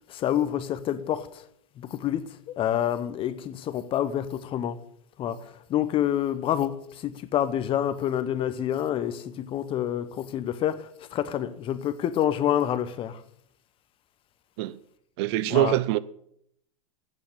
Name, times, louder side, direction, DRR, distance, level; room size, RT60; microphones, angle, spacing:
voice 1, 0.1-1.4 1.8-4.8 5.2-13.2 15.5-15.8, left 10 dB, 30° left, 0.8 m, -28 dB
voice 2, 15.2-16.0, right 16 dB, 50° right, 0.5 m, -24 dB
8.4 x 7.1 x 8.0 m
hypercardioid pair, 115°, 17 cm